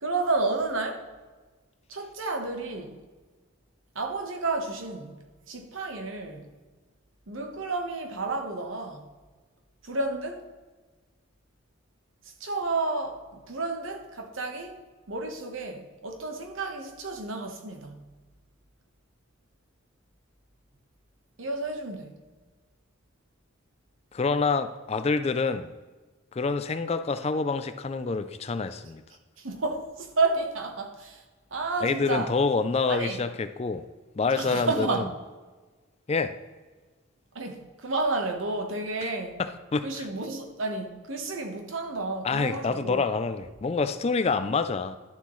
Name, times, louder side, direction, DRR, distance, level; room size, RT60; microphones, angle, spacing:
voice 1, 0.0-1.0 1.9-3.0 3.9-5.1 5.5-6.4 7.3-9.0 9.8-10.5 12.4-14.8 15.1-18.0 21.4-22.1 29.4-31.2 31.5-32.3 32.9-33.2 34.3-35.1 37.3-39.4 39.8-43.0, right 3 dB, 75° right, 1.2 m, -31 dB
voice 2, 24.1-25.7 26.3-29.0 31.8-33.9 34.2-35.0 36.1-36.4 39.4-40.1 42.2-45.0, left 4 dB, 30° left, 0.3 m, -27 dB
11.5 x 7.0 x 3.1 m
head